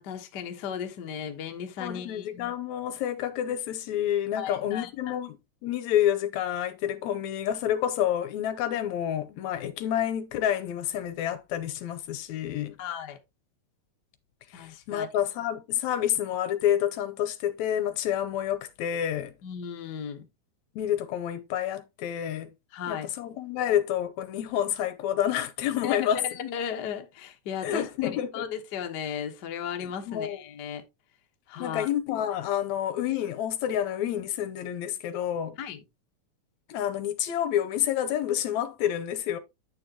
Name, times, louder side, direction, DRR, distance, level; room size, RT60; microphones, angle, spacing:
voice 1, 0.0-2.5 4.4-5.1 12.8-13.2 14.5-15.1 19.4-20.2 22.7-23.1 25.8-30.8 31.5-31.9 35.6-35.8, left 8 dB, 55° left, 1.1 m, -36 dB
voice 2, 1.8-5.4 5.6-12.8 14.5-19.3 20.8-22.5 22.9-26.2 27.6-28.5 29.8-30.4 31.6-35.6 36.7-39.4, left 10 dB, 80° left, 1.9 m, -29 dB
9.2 x 6.5 x 2.8 m
omnidirectional pair, 3.5 m